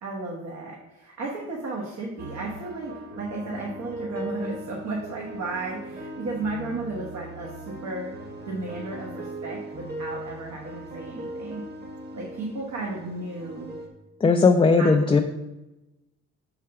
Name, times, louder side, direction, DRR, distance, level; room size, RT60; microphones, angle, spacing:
voice 1, 0.0-8.1 8.4-11.6 12.1-13.7 14.7-14.9, right 2 dB, 65° right, -2 dB, 1.3 m, -34 dB
sound 1, 2.2-13.9, right 1 dB, 35° right, 1.4 m, -39 dB
voice 2, 14.2-15.2, left 4 dB, 15° left, 4 dB, 0.4 m, -18 dB
5.5 x 4.8 x 5.6 m, 0.99 s
cardioid pair, 90°, 30 cm